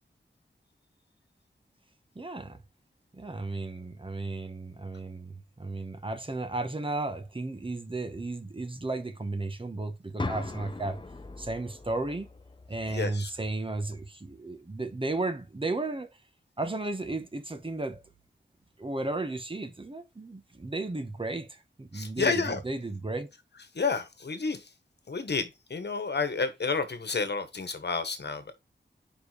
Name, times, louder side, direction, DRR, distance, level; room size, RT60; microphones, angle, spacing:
voice 1, 2.1-2.6 3.1-11.0 11.4-12.3 12.7-16.1 16.6-18.0 18.8-23.3, right 2 dB, 30° right, 1.1 m, -34 dB
sound 1, 10.2-14.2, left 3 dB, 25° left, 0.7 m, -41 dB
voice 2, 12.9-13.3 21.9-22.6 23.7-24.7 25.1-28.5, left 4 dB, 65° left, 1.3 m, -30 dB
5.1 x 4.6 x 5.0 m
wide cardioid pair, 95°, 19 cm